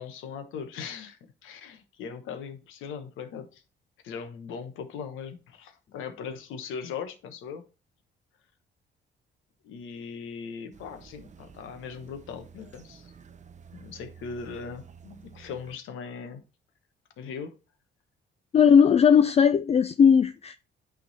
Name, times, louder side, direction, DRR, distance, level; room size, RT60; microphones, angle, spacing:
voice 1, 0.0-3.6 4.0-7.6 9.6-13.1 13.7-16.4 17.2-17.5, left 6 dB, 85° left, 1.2 m, -39 dB
sound 1, 10.7-15.8, right 6 dB, 35° right, 0.7 m, -51 dB
voice 2, 18.5-20.6, left 7 dB, 30° left, 0.3 m, -18 dB
9.1 x 3.8 x 4.2 m
cardioid pair, 90°, 20 cm